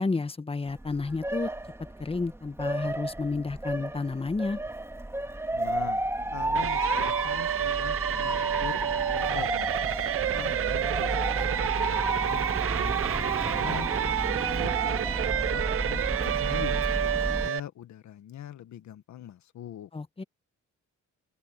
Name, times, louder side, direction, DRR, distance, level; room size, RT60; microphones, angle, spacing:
voice 1, 0.0-1.5 2.0-4.6 19.9-20.2, left 3 dB, 20° left, 1.3 m, -31 dB
Motor vehicle (road) / Siren, 0.7-17.5, right 1 dB, 10° right, 2.7 m, -32 dB
voice 2, 5.5-9.7 10.3-12.5 12.8-15.0 15.5-19.9, left 11 dB, 70° left, 1.6 m, -43 dB
sound 1, 6.5-17.6, right 11 dB, 45° right, 0.6 m, -29 dB
open air
cardioid pair, 90°, 30 cm